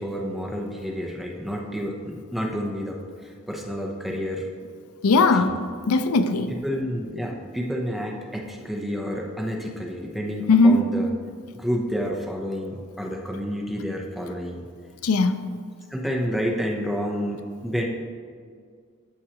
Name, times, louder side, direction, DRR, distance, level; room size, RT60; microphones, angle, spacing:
voice 1, 0.0-4.5 5.4-5.6 6.6-11.1 11.5-14.7 15.9-17.8, equal, ahead, -1 dB, 0.7 m, -29 dB
voice 2, 5.0-6.5 10.5-10.8 15.0-15.5, left 3 dB, 80° left, 10 dB, 0.4 m, -19 dB
13.0 x 6.2 x 3.0 m, 2.1 s
head